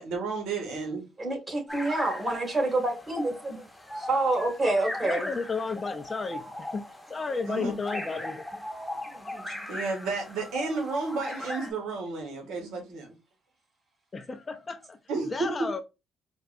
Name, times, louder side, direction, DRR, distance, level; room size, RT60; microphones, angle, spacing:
voice 1, 0.0-1.0 7.5-7.7 9.7-13.1 15.1-15.5, right 4 dB, 75° right, 1.2 m, -32 dB
voice 2, 1.2-3.7 3.9-5.3 9.1-9.7, right 2 dB, 35° right, 1.9 m, -28 dB
sound 1, 1.7-11.7, left 1 dB, ahead, 0.9 m, -39 dB
voice 3, 5.0-6.8 7.1-8.4 14.1-15.0 15.3-15.8, left 4 dB, 35° left, 0.5 m, -33 dB
4.5 x 2.2 x 2.5 m
supercardioid pair, 70°, 0 cm